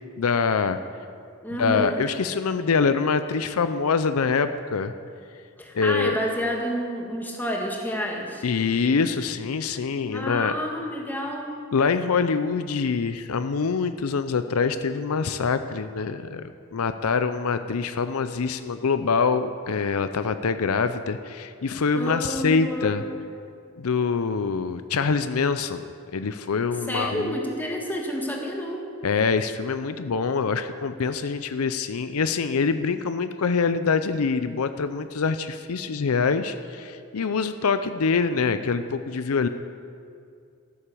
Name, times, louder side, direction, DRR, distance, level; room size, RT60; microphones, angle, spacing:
voice 1, 0.2-0.8 1.6-4.9 5.7-6.2 8.4-10.5 11.7-23.0 23.8-27.4 29.0-39.5, left 5 dB, 75° left, 10 dB, 0.5 m, -25 dB
voice 2, 1.4-2.0 5.6-8.4 10.1-11.5 21.9-23.1 26.9-28.9, equal, 10° left, 0 dB, 1.6 m, -29 dB
13.0 x 9.5 x 6.8 m, 2.4 s
head